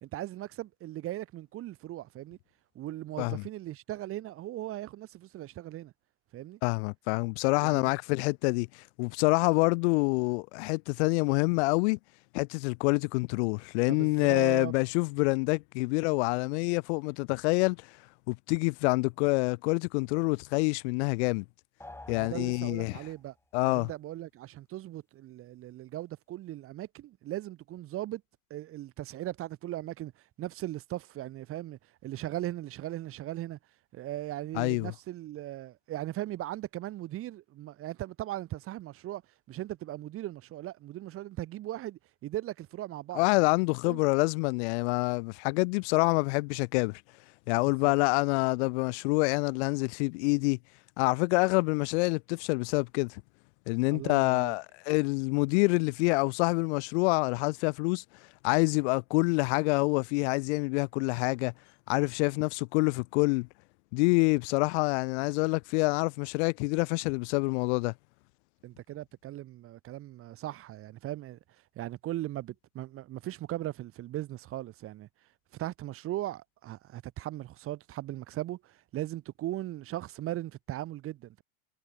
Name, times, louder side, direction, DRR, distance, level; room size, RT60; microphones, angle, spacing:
voice 1, 0.0-2.4 2.7-5.9 6.3-6.6 7.6-7.9 13.9-14.7 22.1-23.3 23.6-28.2 28.5-30.1 30.4-33.6 33.9-39.2 39.5-43.3 43.9-44.0 47.6-47.9 53.9-54.5 68.6-71.4 71.8-75.1 75.5-81.4, right 14 dB, 30° right, 1.0 m, -38 dB
voice 2, 6.6-12.0 12.3-17.8 18.3-21.4 22.1-23.0 23.5-23.9 34.5-34.9 43.1-47.0 47.5-50.6 51.0-53.2 53.7-58.0 58.4-61.5 61.9-63.5 63.9-67.9, left 29 dB, 50° left, 0.6 m, -27 dB
sound 1, 21.8-23.3, left 2 dB, 5° left, 3.0 m, -49 dB
hypercardioid pair, 105°, 43 cm